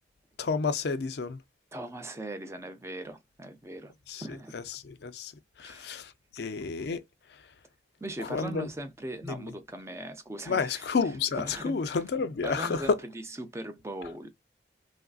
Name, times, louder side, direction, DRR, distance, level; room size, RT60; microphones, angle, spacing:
voice 1, 0.4-1.4 4.1-5.3 5.6-7.0 8.2-8.7 9.3-9.5 10.5-13.0, left 4 dB, 65° left, 0.4 m, -30 dB
voice 2, 1.7-3.9 4.2-4.6 5.6-5.9 8.0-10.9 11.4-12.0 12.4-14.3, right 1 dB, 15° right, 0.4 m, -39 dB
3.1 x 2.5 x 2.3 m
head